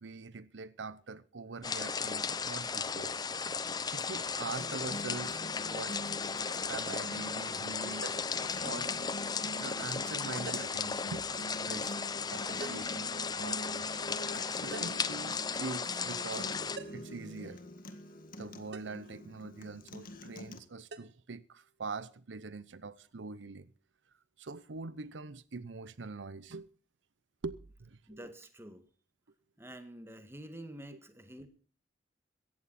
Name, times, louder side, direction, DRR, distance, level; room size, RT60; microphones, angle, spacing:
voice 1, 0.0-3.2 3.9-6.0 6.7-8.1 8.6-8.9 9.6-12.0 12.3-14.0 14.6-16.6 16.9-17.6 18.4-23.7 24.4-26.7 27.4-28.2, right 4 dB, 85° right, 0.7 m, -43 dB
sound 1, 1.6-16.8, left 5 dB, 20° left, 0.6 m, -36 dB
Acoustic guitar, 4.6-20.6, left 1 dB, 50° left, 1.9 m, -46 dB
sound 2, 8.0-8.4 10.5-10.9 12.6-13.0 14.7-15.1 16.8-17.2 18.7-19.0 20.9-21.1, right 4 dB, 70° right, 1.1 m, -45 dB
voice 2, 28.1-28.8 29.6-31.5, right 1 dB, 15° right, 1.9 m, -48 dB
17.0 x 14.5 x 4.3 m
head